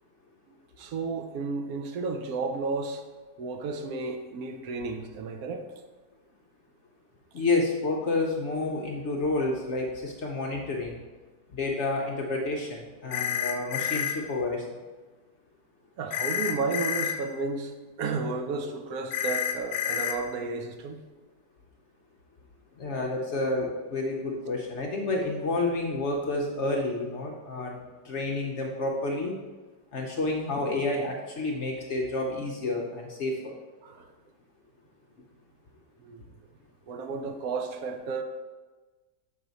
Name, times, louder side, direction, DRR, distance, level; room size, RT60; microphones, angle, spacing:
voice 1, 0.8-3.0 3.4-5.7 16.0-21.0 33.8-34.1 36.0-36.3 36.9-38.2, right 4 dB, 70° right, 4 dB, 1.0 m, -32 dB
voice 2, 7.3-11.0 11.5-14.7 22.8-29.4 29.9-33.5, left 2 dB, 60° left, 0 dB, 0.8 m, -29 dB
sound 1, 13.1-14.1 16.1-17.1 19.1-20.1, left 9 dB, 80° left, 1.1 m, -29 dB
6.3 x 4.5 x 3.9 m, 1.3 s
omnidirectional pair, 1.7 m